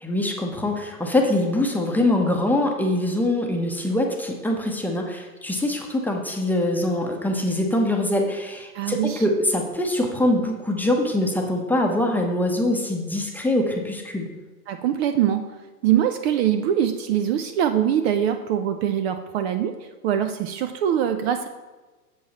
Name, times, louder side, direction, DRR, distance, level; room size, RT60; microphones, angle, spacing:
voice 1, 0.0-14.3, left 1 dB, 5° left, 1 dB, 0.8 m, -23 dB
voice 2, 8.7-9.2 14.7-15.5 15.8-19.7 20.0-21.5, right 10 dB, 45° right, 8 dB, 0.6 m, -23 dB
7.4 x 7.0 x 4.1 m, 1.2 s
hypercardioid pair, 115°, 46 cm